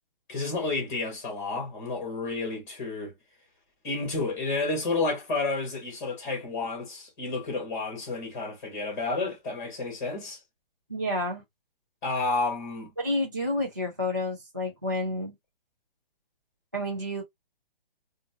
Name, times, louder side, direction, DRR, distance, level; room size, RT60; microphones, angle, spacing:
voice 1, 0.3-3.1 3.8-10.4 12.0-12.9, left 3 dB, 20° left, 1.8 m, -30 dB
voice 2, 10.9-11.4 13.0-15.3 16.7-17.2, left 1 dB, 20° right, 0.4 m, -29 dB
3.8 x 2.4 x 2.4 m
hypercardioid pair, 180°, 29 cm